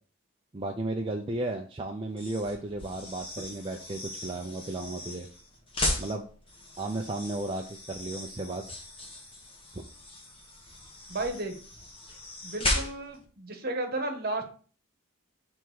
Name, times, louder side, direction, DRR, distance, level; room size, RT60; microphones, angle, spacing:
voice 1, 0.5-5.3 6.0-6.3 6.8-8.6, right 2 dB, 25° right, 1 dB, 0.4 m, -34 dB
sound 1, 2.1-13.2, left 1 dB, 25° left, 1.3 m, -37 dB
voice 2, 11.1-11.5 12.4-14.4, right 2 dB, 45° right, 4 dB, 1.1 m, -33 dB
5.9 x 3.5 x 4.7 m, 0.41 s
head